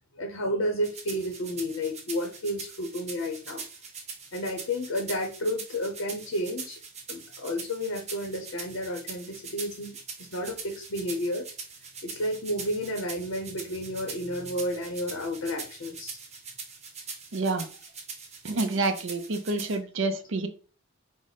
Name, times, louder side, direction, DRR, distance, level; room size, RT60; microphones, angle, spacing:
voice 1, 0.2-3.6 4.3-6.8 7.1-10.0 10.3-11.5 12.0-16.2, equal, 70° left, 4 dB, 0.7 m, -31 dB
sound 1, 0.8-19.8, right 5 dB, 30° right, 0.8 m, -42 dB
voice 2, 17.3-17.7 18.4-20.5, right 3 dB, 60° right, 8 dB, 0.6 m, -28 dB
4.9 x 2.1 x 4.0 m, 0.36 s
head